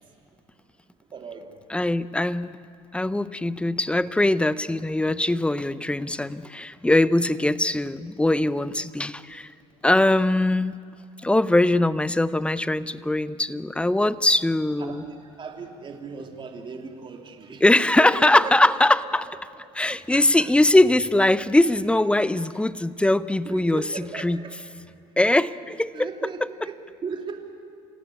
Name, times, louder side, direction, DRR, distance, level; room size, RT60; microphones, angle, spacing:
voice 1, 1.1-1.5 14.8-18.6 19.3-20.5 22.3-22.4 23.4-24.5 25.9-27.4, right 5 dB, 35° right, 4 dB, 2.8 m, -37 dB
voice 2, 1.7-2.6 2.9-9.5 9.8-10.7 11.2-15.0 17.6-19.3 19.7-24.4 25.2-26.1 26.4-26.5, left 1 dB, 10° left, 16 dB, 0.7 m, -21 dB
27.0 x 17.0 x 8.5 m, 2.3 s
supercardioid pair, 85°, 14 cm